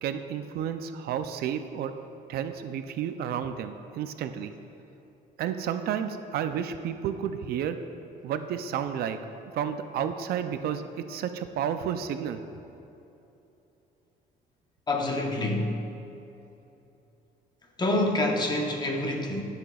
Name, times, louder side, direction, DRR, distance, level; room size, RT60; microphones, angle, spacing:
voice 1, 0.0-1.9 2.3-4.5 5.4-7.8 8.2-9.2 9.5-10.8 11.1-12.4, right 8 dB, 65° right, 9 dB, 0.4 m, -31 dB
voice 2, 14.9-15.8 17.8-19.4, left 1 dB, 25° left, 1 dB, 0.9 m, -27 dB
12.5 x 6.0 x 2.3 m, 2.9 s
cardioid pair, 110°, 17 cm